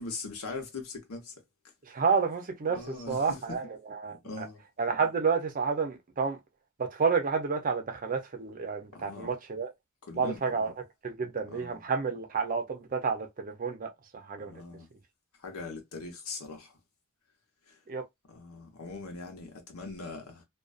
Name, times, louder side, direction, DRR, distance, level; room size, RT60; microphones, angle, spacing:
voice 1, 0.0-1.3 2.7-3.6 4.2-4.6 8.9-9.3 10.1-10.7 11.5-11.8 14.4-14.9 15.4-16.8 17.7-17.8 18.3-20.4, left 3 dB, 90° left, 0.9 m, -41 dB
voice 2, 1.9-2.8 3.1-3.6 4.0-4.5 4.8-6.4 6.8-9.7 10.2-10.7 11.0-13.9 14.3-14.5 17.9-18.0, right 5 dB, 40° right, 0.5 m, -30 dB
2.5 x 2.3 x 2.3 m
head